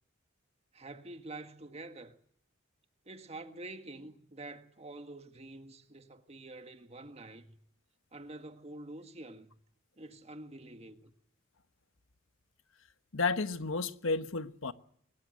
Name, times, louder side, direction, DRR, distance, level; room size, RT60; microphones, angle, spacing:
voice 1, 0.7-2.2 3.1-7.6 8.1-9.6 10.0-11.1, right 2 dB, 30° right, 1.7 m, -47 dB
voice 2, 13.1-14.7, left 3 dB, 80° left, 1.3 m, -32 dB
23.5 x 21.0 x 7.9 m
head